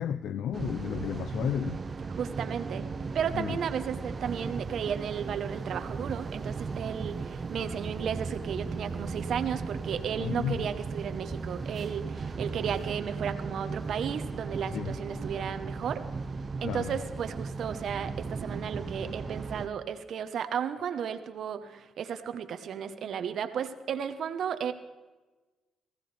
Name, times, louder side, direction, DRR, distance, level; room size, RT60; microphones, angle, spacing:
voice 1, 0.0-1.8 3.3-3.6 10.2-10.6 14.7-14.9 16.6-16.9, left 9 dB, 75° left, 13 dB, 0.4 m, -32 dB
sound 1, 0.5-19.7, right 4 dB, 35° right, 0.7 m, -36 dB
voice 2, 2.2-2.9 3.1-16.0 16.6-24.7, right 8 dB, 65° right, 10 dB, 1.1 m, -34 dB
19.5 x 15.5 x 3.4 m, 1.2 s
cardioid pair, 90°, 0 cm